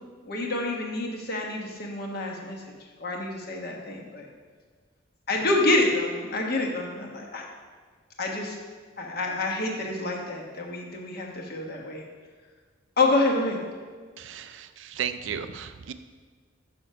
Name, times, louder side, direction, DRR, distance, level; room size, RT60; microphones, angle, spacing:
voice 1, 0.3-2.6 3.0-4.3 5.3-7.4 8.2-8.5 9.0-12.0 13.0-13.6, left 2 dB, 50° left, 0 dB, 1.2 m, -27 dB
voice 2, 14.2-15.9, right 8 dB, 70° right, 10 dB, 0.4 m, -34 dB
6.3 x 6.1 x 5.5 m, 1.5 s
head